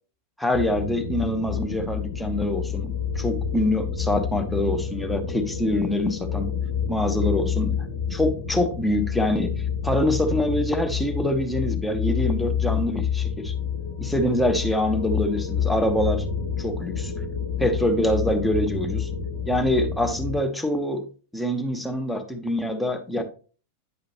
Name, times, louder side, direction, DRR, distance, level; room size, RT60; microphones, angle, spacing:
voice 1, 0.4-6.5 6.9-7.7 8.1-13.5 14.0-16.2 16.6-17.1 17.6-19.1 19.5-21.1 21.3-23.2, left 1 dB, 5° left, 1.0 m, -25 dB
sound 1, 0.5-20.4, left 7 dB, 55° left, 1.2 m, -28 dB
9.3 x 5.0 x 2.9 m
figure-of-eight pair, 90°, 0 cm